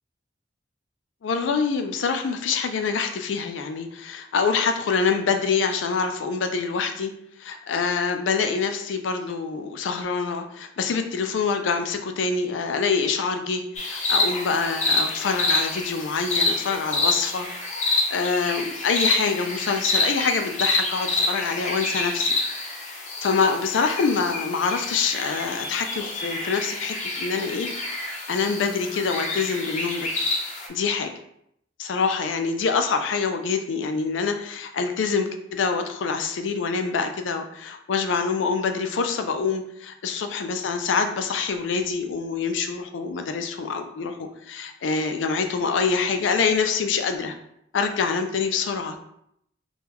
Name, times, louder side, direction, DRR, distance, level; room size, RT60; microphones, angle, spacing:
voice 1, 1.2-7.1 7.4-17.5 17.9-22.3 23.2-27.7 28.3-30.1 30.7-31.1 31.8-47.4 47.7-49.0, left 5 dB, 90° left, 6 dB, 0.4 m, -25 dB
sound 1, 13.8-30.7, left 2 dB, 40° left, 0.6 m, -27 dB
3.5 x 2.3 x 2.9 m, 0.74 s
head